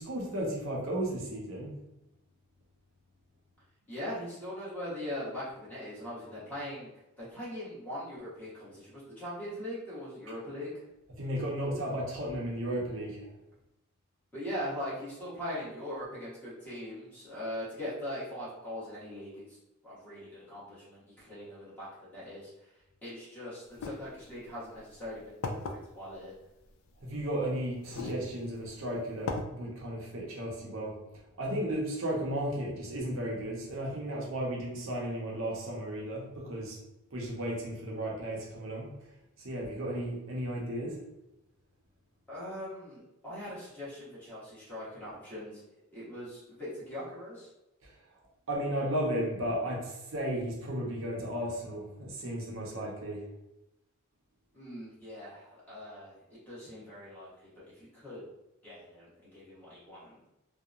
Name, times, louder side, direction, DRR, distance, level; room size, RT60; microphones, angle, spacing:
voice 1, 0.0-1.8 11.2-13.3 27.0-31.0 31.4-36.8 37.1-38.9 39.4-41.0 47.8-47.9 48.5-53.2, right 1 dB, 60° right, -2 dB, 0.7 m, -34 dB
voice 2, 3.9-6.9 7.2-10.8 14.3-19.6 19.8-22.5 23.0-26.3 42.3-45.6 45.9-47.5 54.5-58.2 58.6-60.2, left 1 dB, 10° left, -10 dB, 0.9 m, -41 dB
sound 1, 23.7-23.9 24.8-24.9 25.4-25.8 27.0-27.1 27.8-28.2 28.7-28.8 29.3-29.4, left 3 dB, 65° left, 0.3 m, -35 dB
2.8 x 2.0 x 2.4 m, 0.91 s
head